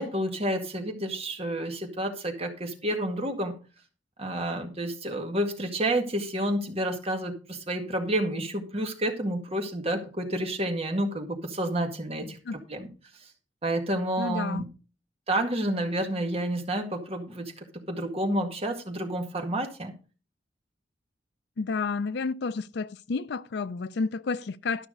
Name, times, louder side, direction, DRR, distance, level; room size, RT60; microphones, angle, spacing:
voice 1, 0.0-3.5 4.2-12.4 12.7-12.9 13.6-14.6 15.3-17.5 17.9-19.9, right 1 dB, 35° right, 1.9 m, -29 dB
voice 2, 12.2-12.6 14.2-14.7 21.6-24.9, left 4 dB, 65° left, 0.5 m, -31 dB
12.5 x 5.9 x 5.2 m
head